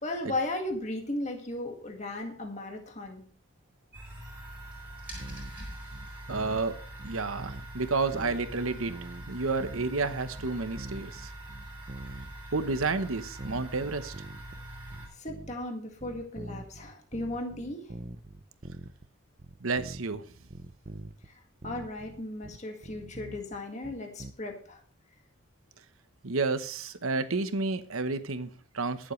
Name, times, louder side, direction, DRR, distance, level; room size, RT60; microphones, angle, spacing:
voice 1, 0.0-3.2 15.2-17.9 21.3-21.4 21.6-24.8, left 2 dB, 35° left, 1.9 m, -36 dB
sound 1, 3.9-15.1, right 1 dB, 10° right, 4.4 m, -43 dB
sound 2, 5.2-5.6 5.9-6.7 7.0-7.8 8.1-9.3 9.6-10.1 10.4-12.3 12.6-13.0 13.4-14.6 14.9-15.7 16.0-19.1 19.4-20.2 20.5-21.3 21.6-24.3, right 2 dB, 40° right, 0.6 m, -44 dB
voice 2, 6.3-6.7 7.0-8.9 9.3-11.3 12.5-14.1 19.6-20.2 26.2-29.1, right 3 dB, 90° right, 1.0 m, -30 dB
21.5 x 7.5 x 3.2 m
head